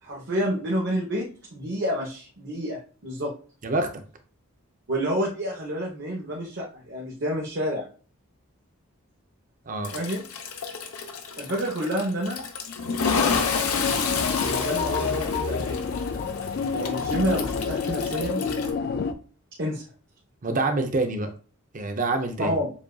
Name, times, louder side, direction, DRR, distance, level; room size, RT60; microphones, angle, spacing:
voice 1, 0.0-3.3 4.9-7.8 9.9-10.2 11.4-12.4 14.4-15.8 16.7-18.4 19.6-19.8 22.4-22.7, equal, 55° right, -3 dB, 1.0 m, -29 dB
voice 2, 3.6-4.0 9.7-9.9 20.4-21.3 21.7-22.5, right 2 dB, 35° right, 6 dB, 0.6 m, -26 dB
Toilet flush, 9.8-18.7, left 5 dB, 90° left, 0.7 m, -30 dB
sound 1, 13.1-19.1, left 5 dB, 50° left, 0.3 m, -28 dB
7.1 x 2.5 x 2.3 m, 0.39 s
head